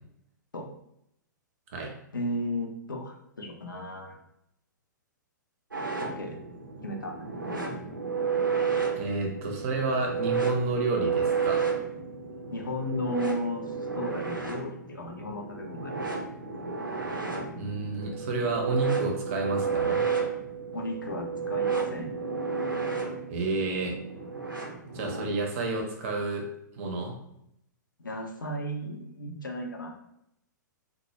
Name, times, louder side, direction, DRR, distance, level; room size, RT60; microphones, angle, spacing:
voice 1, 2.1-4.2 6.0-6.4 6.8-7.2 12.5-16.0 20.7-22.1 28.0-29.9, left 1 dB, 80° left, 2 dB, 0.5 m, -35 dB
sound 1, 5.7-25.3, right 5 dB, 90° right, 0.5 m, -32 dB
voice 2, 8.9-11.6 17.6-20.1 23.3-24.0 24.9-26.5 26.8-27.2, right 3 dB, 45° right, 2 dB, 0.6 m, -30 dB
2.1 x 2.1 x 2.9 m, 0.77 s
figure-of-eight pair, 110°, 11 cm